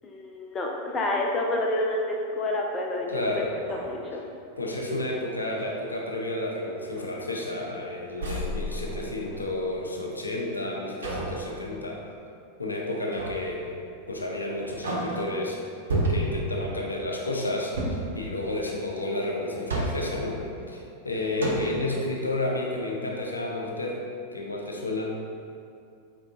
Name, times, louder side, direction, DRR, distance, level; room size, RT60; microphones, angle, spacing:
voice 1, 0.0-3.4 3.9-4.2, left 2 dB, 20° left, 0 dB, 0.5 m, -28 dB
sound 1, 3.0-3.1 3.5-4.8 5.3-5.7 6.3-6.5 6.9-7.8 8.2-9.7 11.0-11.5 13.1-13.5 14.0-14.1 14.6-15.4 15.9-16.5 17.7-18.2 19.3-20.2 20.9-21.0 21.4-21.9, right 1 dB, 65° right, 0.6 m, -32 dB
voice 2, 3.1-3.5 4.6-12.0 12.6-13.6 14.1-15.6 16.1-20.4 20.7-24.0 24.3-25.2, left 1 dB, 80° left, -1 dB, 0.4 m, -31 dB
4.5 x 3.6 x 2.4 m, 2.5 s
figure-of-eight pair, 90°, 0 cm